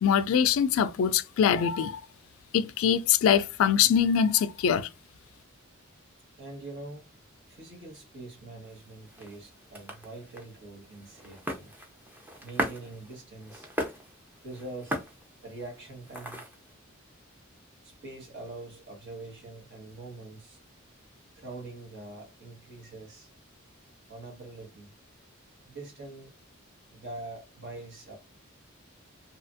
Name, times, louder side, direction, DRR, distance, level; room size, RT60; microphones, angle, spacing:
voice 1, 0.0-1.9 2.5-4.9, left 8 dB, 75° left, 0.3 m, -23 dB
voice 2, 6.4-7.0 7.5-11.7 12.4-13.7 14.4-15.0 15.4-16.4 17.8-20.6 21.3-23.3 24.1-24.9 25.6-26.3 26.9-28.2, right 2 dB, 60° right, 1.2 m, -44 dB
sound 1, 8.6-16.7, equal, 10° right, 0.5 m, -39 dB
2.8 x 2.4 x 2.5 m
head